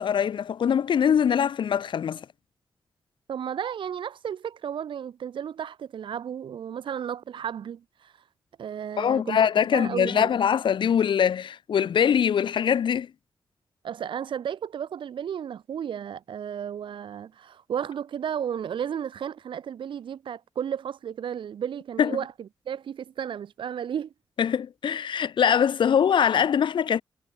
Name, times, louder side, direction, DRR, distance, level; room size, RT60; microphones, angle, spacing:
voice 1, 0.0-2.2 9.0-13.1 22.0-22.2 24.4-27.0, left 8 dB, 75° left, 1.3 m, -23 dB
voice 2, 3.3-8.1 8.6-10.3 13.8-24.1, right 8 dB, 90° right, 7.8 m, -33 dB
cardioid pair, 90°, 8 cm